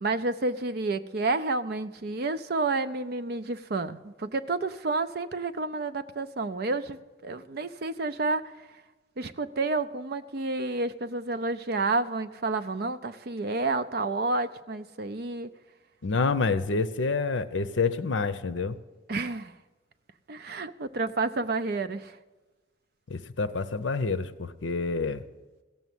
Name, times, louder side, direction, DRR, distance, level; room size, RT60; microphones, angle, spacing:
voice 1, 0.0-8.5 9.2-15.5 19.1-19.5 20.3-22.2, right 3 dB, 55° right, 11 dB, 0.5 m, -30 dB
voice 2, 16.0-18.8 23.1-25.2, left 4 dB, 70° left, 12 dB, 0.7 m, -28 dB
16.0 x 7.1 x 9.3 m, 1.2 s
head